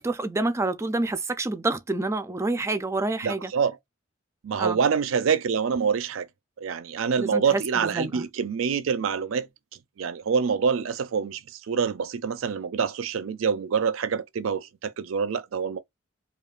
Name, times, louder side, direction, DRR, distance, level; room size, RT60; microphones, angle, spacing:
voice 1, 0.0-3.5 4.6-4.8 7.2-8.3, right 2 dB, 15° right, 0.3 m, -28 dB
voice 2, 3.2-3.8 4.4-6.3 6.6-9.5 10.0-11.4 11.7-15.8, right 6 dB, 85° right, 0.4 m, -26 dB
5.0 x 2.3 x 2.4 m
head